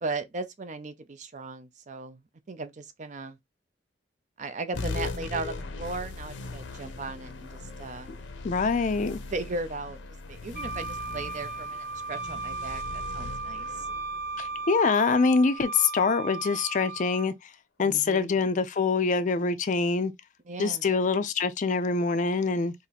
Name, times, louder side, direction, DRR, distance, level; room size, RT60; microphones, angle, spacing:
voice 1, 0.0-2.2 2.5-3.4 4.4-7.5 7.8-8.1 9.3-10.0 10.3-13.7 17.8-18.3 20.5-20.8, right 3 dB, 40° right, 0.5 m, -36 dB
sound 1, 4.7-15.6, left 3 dB, 90° left, 0.6 m, -39 dB
voice 2, 8.4-9.2 14.4-17.3 17.8-20.1 20.6-22.7, left 4 dB, 45° left, 0.4 m, -25 dB
Wind instrument woodwind instrument, 10.5-17.3, right 3 dB, 60° right, 1.0 m, -36 dB
2.8 x 2.5 x 3.8 m
head